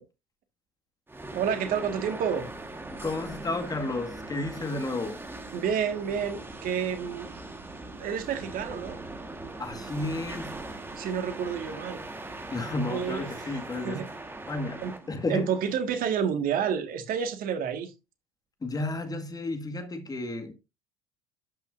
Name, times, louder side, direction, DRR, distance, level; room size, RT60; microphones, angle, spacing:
sound 1, 1.1-16.2, right 2 dB, 10° right, 1.5 m, -41 dB
voice 1, 1.3-2.4 5.5-7.3 7.9-9.0 11.0-12.0 12.9-13.5 13.8-14.0 14.8-15.0 15.3-17.9, right 7 dB, 55° right, 1.8 m, -29 dB
voice 2, 3.0-5.2 9.6-10.6 12.5-14.0 14.5-15.5 18.6-20.5, left 2 dB, 20° left, 1.9 m, -32 dB
12.5 x 5.7 x 2.6 m
hypercardioid pair, 80°, 18 cm